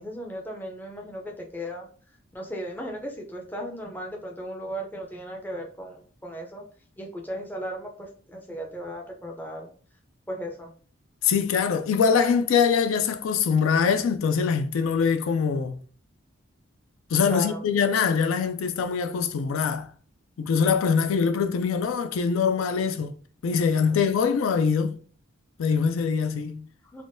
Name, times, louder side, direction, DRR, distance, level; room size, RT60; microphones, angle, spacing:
voice 1, 0.0-1.9 2.3-6.6 7.0-9.7 10.3-10.7 17.3-17.6 23.9-24.0 26.8-27.0, equal, 10° left, 0.4 m, -36 dB
voice 2, 11.2-15.8 17.1-19.9 20.4-23.1 23.4-25.0 25.6-26.7, left 6 dB, 75° left, 0.3 m, -23 dB
3.5 x 2.2 x 2.5 m
head